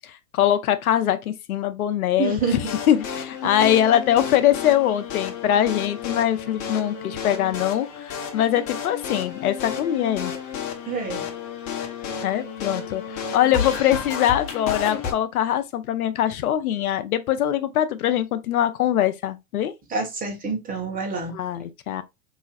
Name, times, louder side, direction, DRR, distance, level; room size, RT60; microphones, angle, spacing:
voice 1, 0.0-2.6 2.9-10.3 12.2-19.7 21.3-22.0, left 11 dB, 80° left, 0.7 m, -22 dB
voice 2, 2.2-2.7 3.6-3.8 10.9-11.2 19.9-21.3, right 4 dB, 20° right, 1.5 m, -27 dB
sound 1, 2.4-15.1, left 7 dB, 45° left, 1.1 m, -32 dB
4.7 x 3.0 x 2.4 m
hypercardioid pair, 115°, 43 cm